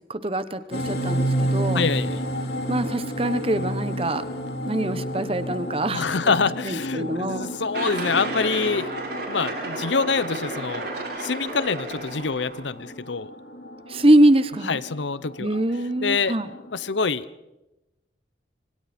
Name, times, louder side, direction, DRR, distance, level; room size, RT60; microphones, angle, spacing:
voice 1, 0.1-1.8 2.7-4.2 4.7-6.2 6.6-7.5 13.9-14.8 15.4-16.5, right 1 dB, 30° right, 13 dB, 1.0 m, -23 dB
sound 1, 0.7-17.0, equal, 60° left, 3.7 m, -32 dB
voice 2, 1.7-2.2 5.9-8.9 9.3-10.9 11.2-13.3 14.7-15.6 16.0-16.3 16.7-17.3, left 4 dB, 80° left, 17 dB, 0.8 m, -25 dB
sound 2, 7.7-12.7, right 2 dB, 60° right, 6.9 m, -32 dB
26.5 x 25.5 x 4.4 m, 0.97 s
head